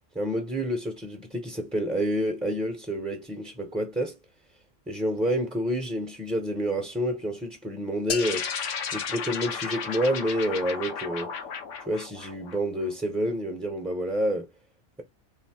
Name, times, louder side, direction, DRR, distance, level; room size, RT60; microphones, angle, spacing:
voice 1, 0.1-4.2 4.9-8.5 8.9-11.3 11.9-14.5, equal, 5° right, 0.8 m, -28 dB
sound 1, 8.1-10.1, left 7 dB, 60° left, 0.7 m, -38 dB
sound 2, 8.2-12.9, left 6 dB, 90° left, 1.1 m, -34 dB
3.3 x 2.8 x 4.3 m
omnidirectional pair, 1.2 m